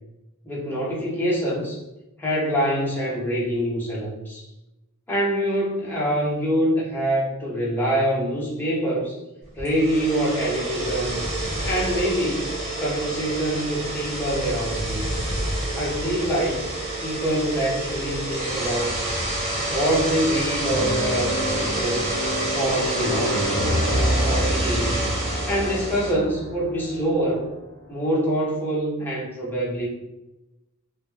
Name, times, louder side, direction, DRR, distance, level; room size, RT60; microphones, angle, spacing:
voice 1, 0.4-1.8 2.2-4.5 5.1-9.2 9.6-11.3 11.6-12.5 12.8-15.0 15.7-16.7 17.0-19.0 19.6-22.1 22.5-23.7 24.2-25.1 25.5-27.5 27.9-29.9, equal, 10° left, -6 dB, 0.6 m, -25 dB
sound 1, 9.6-26.1, right 1 dB, 30° right, 0.7 m, -28 dB
sound 2, 20.6-27.7, equal, 90° right, 0.9 m, -27 dB
2.2 x 2.1 x 3.0 m, 0.97 s
head